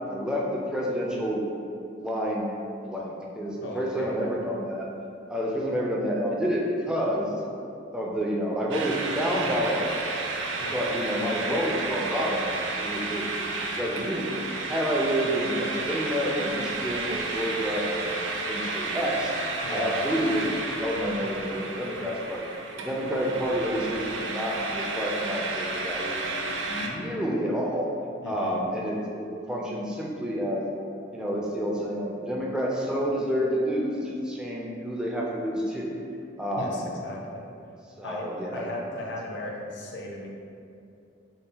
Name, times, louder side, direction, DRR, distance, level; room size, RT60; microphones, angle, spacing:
voice 1, 0.1-1.5 2.0-2.5 2.8-4.9 5.3-7.4 7.9-10.2 10.7-14.4 14.7-18.1 18.5-19.3 19.7-22.4 22.8-26.3 26.7-27.9 28.2-30.7 31.1-36.0 36.4-36.9 38.0-38.9 39.3-39.5, equal, 5° right, -3 dB, 0.4 m, -29 dB
voice 2, 3.6-4.3 10.6-10.8 19.6-20.0 28.2-28.6 36.6-37.4 38.0-38.3 38.5-40.3, left 1 dB, 65° left, -1 dB, 0.6 m, -36 dB
sound 1, 8.7-26.9, right 3 dB, 80° right, 0.4 m, -32 dB
3.9 x 2.2 x 3.8 m, 2.6 s
head